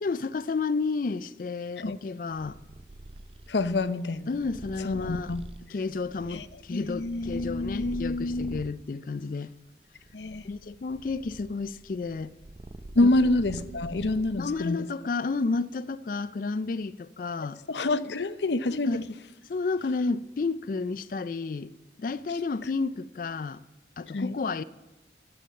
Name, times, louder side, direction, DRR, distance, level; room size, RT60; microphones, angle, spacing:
voice 1, 0.0-2.6 4.3-5.3 5.7-9.5 10.4-12.3 13.0-13.1 14.4-17.6 18.7-19.1 19.5-21.7 22.0-23.6 24.0-24.6, left 4 dB, 50° left, 0.4 m, -31 dB
Purr, 2.3-8.8 9.5-14.7, right 1 dB, 30° right, 0.5 m, -44 dB
voice 2, 3.5-4.4 4.8-5.4 6.3-6.4 6.7-8.6 10.1-10.5 12.9-14.9 17.4-19.0 24.1-24.4, left 2 dB, 80° left, 0.7 m, -27 dB
13.5 x 9.4 x 7.6 m
head